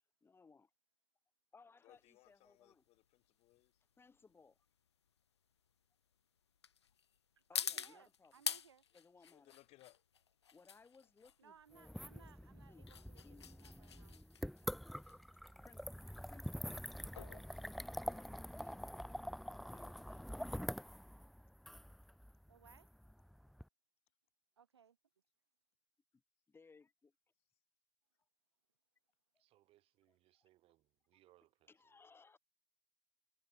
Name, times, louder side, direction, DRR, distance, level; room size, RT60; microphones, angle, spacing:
voice 1, 0.2-0.7 1.5-2.8 4.0-4.6 7.5-8.4 8.9-9.5 10.5-12.3 12.7-13.7 15.6-15.9 16.3-16.8 17.4-19.0 19.7-20.3 26.1-26.2 26.5-27.1 30.4-30.5 31.7-32.4, left 4 dB, 15° left, 2.4 m, -64 dB
voice 2, 1.8-3.8 7.8-7.9 9.2-10.0 15.1-15.2, left 19 dB, 45° left, 6.0 m, -66 dB
sound 1, 1.9-18.6, left 8 dB, 80° left, 0.6 m, -48 dB
voice 3, 7.4-8.8 11.4-14.2 22.5-22.9 24.6-25.0, right 7 dB, 75° right, 2.7 m, -64 dB
sound 2, 11.7-23.6, equal, ahead, 0.3 m, -46 dB
voice 4, 29.3-32.0, right 15 dB, 45° right, 5.1 m, -72 dB
figure-of-eight pair, 80°, 14 cm